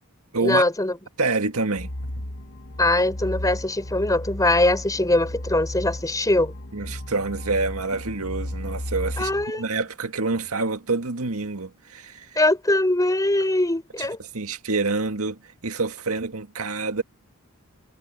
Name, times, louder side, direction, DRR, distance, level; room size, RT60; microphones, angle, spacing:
voice 1, 0.4-1.0 2.8-6.5 9.2-9.7 12.4-14.2, left 1 dB, 15° left, 4.2 m, -22 dB
voice 2, 1.2-2.1 6.7-12.4 14.3-17.0, right 3 dB, 80° right, 1.9 m, -27 dB
sound 1, 1.8-9.5, left 1 dB, 55° left, 1.6 m, -34 dB
head